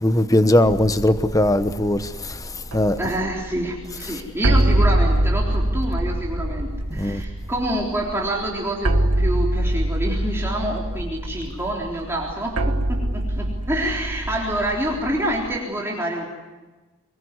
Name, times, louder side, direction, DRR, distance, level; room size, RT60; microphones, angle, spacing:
voice 1, 0.0-3.0 6.9-7.2, left 1 dB, 15° left, 1.0 m, -20 dB
sound 1, 0.6-15.6, right 1 dB, 90° right, 1.7 m, -24 dB
voice 2, 3.0-16.3, right 1 dB, 10° right, 3.7 m, -27 dB
25.5 x 22.0 x 9.6 m
head